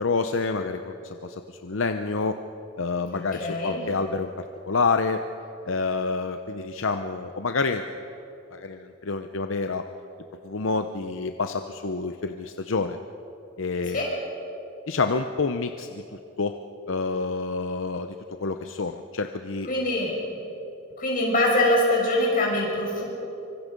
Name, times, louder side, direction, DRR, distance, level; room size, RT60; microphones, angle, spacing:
voice 1, 0.0-2.4 2.8-4.3 4.7-5.2 5.7-7.8 8.5-9.8 10.4-13.0 13.6-14.0 14.9-16.6 16.9-18.1 18.4-19.7, left 4 dB, 75° left, 7 dB, 0.8 m, -28 dB
voice 2, 3.1-3.8 13.9-14.1 19.7-20.1 21.0-23.0, left 1 dB, 40° left, -2 dB, 6.1 m, -23 dB
25.0 x 24.5 x 5.3 m, 2.9 s
head